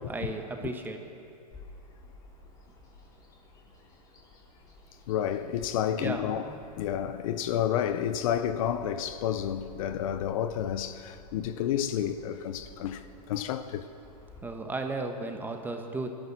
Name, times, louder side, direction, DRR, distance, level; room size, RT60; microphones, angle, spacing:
voice 1, 0.1-1.1 6.0-6.6 14.4-16.1, right 2 dB, 10° right, 1.3 m, -35 dB
Bird vocalization bird call bird song, 1.5-14.4, left 2 dB, 15° left, 3.2 m, -53 dB
voice 2, 5.1-13.9, left 10 dB, 55° left, 0.8 m, -30 dB
24.5 x 13.0 x 4.3 m
hypercardioid pair, 125°, 21 cm